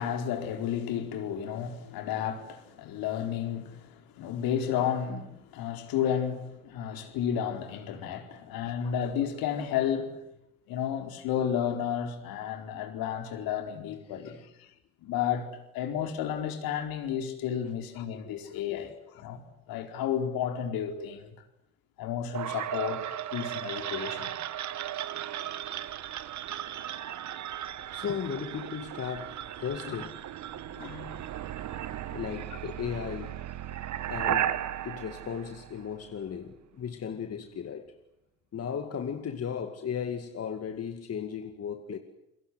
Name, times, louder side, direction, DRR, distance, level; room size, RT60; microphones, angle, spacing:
voice 1, 0.0-10.2 10.7-14.7 15.0-19.4 19.7-21.3 22.0-24.3 29.8-30.0 30.5-31.2, left 9 dB, 60° left, 4.4 m, -32 dB
voice 2, 14.1-14.4 18.1-18.3 18.7-18.9 27.9-30.2 32.1-33.4 33.7-33.8 34.1-34.5 34.8-37.9 38.5-42.0, left 7 dB, 40° left, 2.3 m, -36 dB
sound 1, 22.3-36.2, right 11 dB, 45° right, 1.6 m, -36 dB
29.5 x 23.0 x 8.0 m
hypercardioid pair, 65°, 39 cm